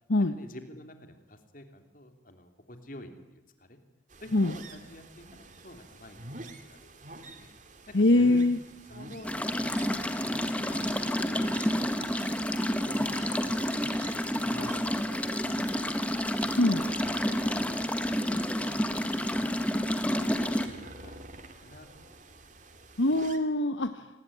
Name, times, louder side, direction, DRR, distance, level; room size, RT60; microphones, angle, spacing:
voice 1, 0.2-3.8 4.2-5.2 5.6-6.2 6.6-7.0 7.3-7.5 7.9-8.5 8.9-9.5 9.8-13.0 13.4-16.3 16.7-22.3, left 1 dB, 45° left, 7 dB, 3.2 m, -49 dB
sound 1, 4.1-23.4, right 2 dB, 40° right, 2.4 m, -48 dB
voice 2, 7.9-8.6 16.6-16.8 23.0-24.1, left 2 dB, 75° left, 10 dB, 1.1 m, -23 dB
sound 2, 9.2-20.7, equal, 5° left, 1.6 m, -29 dB
27.0 x 20.0 x 9.9 m, 1.0 s
head